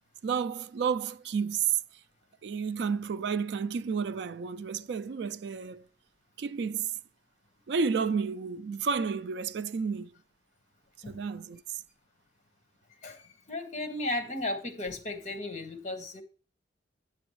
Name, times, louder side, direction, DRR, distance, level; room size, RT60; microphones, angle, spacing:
voice 1, 0.2-1.8 2.4-5.9 6.4-7.0 7.7-10.1 11.1-11.8, right 6 dB, 65° right, 0.3 m, -31 dB
voice 2, 13.5-16.2, left 2 dB, 40° left, 1.2 m, -35 dB
8.2 x 7.0 x 3.1 m
head